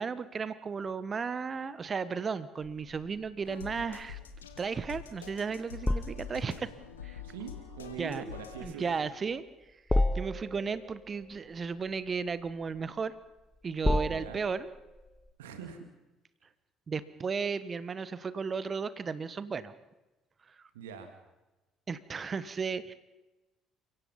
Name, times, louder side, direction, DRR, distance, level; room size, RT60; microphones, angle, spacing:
voice 1, 0.0-4.2 4.6-6.7 7.0-7.2 8.0-8.2 8.6-9.4 10.1-13.1 13.6-14.7 16.9-19.7 21.9-22.9, right 5 dB, 35° right, 16 dB, 1.2 m, -34 dB
sound 1, 2.6-15.3, left 1 dB, 10° left, 1.3 m, -35 dB
sound 2, 3.4-8.7, left 8 dB, 80° left, 1.7 m, -46 dB
voice 2, 7.2-9.0 14.1-14.4 15.4-15.9 20.7-21.1, right 6 dB, 75° right, 7 dB, 2.2 m, -43 dB
30.0 x 17.0 x 5.5 m, 1.1 s
figure-of-eight pair, 50°, 0 cm